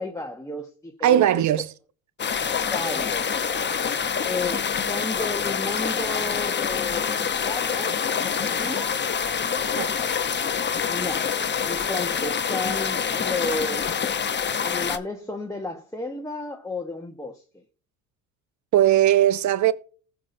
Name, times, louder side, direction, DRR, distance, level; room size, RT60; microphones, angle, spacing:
voice 1, 0.0-1.2 2.7-3.7 4.2-9.0 10.9-11.3 11.6-14.1 14.6-17.6, left 2 dB, 10° left, 1.2 m, -33 dB
voice 2, 1.0-1.7 9.8-9.9 18.7-19.7, right 12 dB, 40° right, 0.8 m, -19 dB
sound 1, 2.2-15.0, left 7 dB, 25° left, 0.9 m, -26 dB
19.5 x 6.9 x 2.7 m
hypercardioid pair, 65°, 43 cm